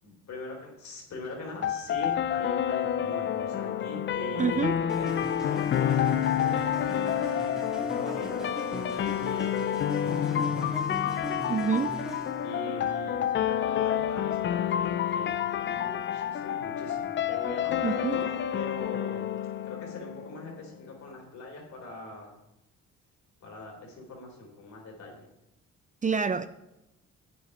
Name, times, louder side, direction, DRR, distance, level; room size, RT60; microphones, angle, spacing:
voice 1, 0.0-10.8 12.4-13.2 13.6-19.3 19.6-22.3 23.4-25.3, left 2 dB, 65° left, 0 dB, 3.4 m, -42 dB
sound 1, 1.6-20.6, left 10 dB, 40° left, 0.4 m, -29 dB
voice 2, 4.4-4.8 11.5-12.0 17.8-18.2 26.0-26.5, right 5 dB, 25° right, 10 dB, 0.5 m, -27 dB
sound 2, 4.9-12.5, right 1 dB, ahead, 1.5 m, -40 dB
10.5 x 8.7 x 3.2 m, 0.89 s
cardioid pair, 90°, 30 cm